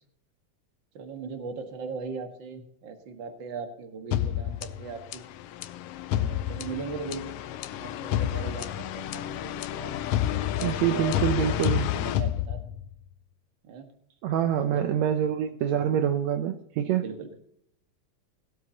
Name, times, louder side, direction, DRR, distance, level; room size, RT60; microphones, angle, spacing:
voice 1, 0.9-5.2 6.1-7.3 7.8-12.6 13.6-13.9 14.8-15.0 16.8-17.3, right 5 dB, 45° right, 5 dB, 2.0 m, -39 dB
sound 1, 4.1-13.0, left 11 dB, 85° left, 1.3 m, -30 dB
voice 2, 10.6-11.9 14.2-17.0, right 9 dB, 75° right, 7 dB, 1.9 m, -26 dB
17.5 x 12.5 x 2.9 m, 0.72 s
omnidirectional pair, 3.3 m